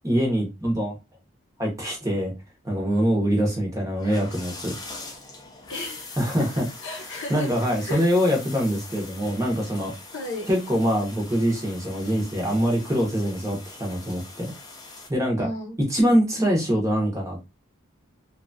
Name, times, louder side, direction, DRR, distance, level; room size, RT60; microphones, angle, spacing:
voice 1, 0.0-1.0 1.6-2.3 2.6-4.8 6.2-6.7 7.3-9.9 10.5-14.5 15.1-15.5 15.9-17.5, equal, 15° right, 0.8 m, -24 dB
sound 1, 4.0-15.1, left 3 dB, 20° left, 0.5 m, -42 dB
voice 2, 5.7-6.2 6.8-7.5 7.8-8.0 10.1-10.5 15.4-15.7, left 1 dB, 55° left, 0.7 m, -34 dB
2.8 x 2.3 x 2.5 m
head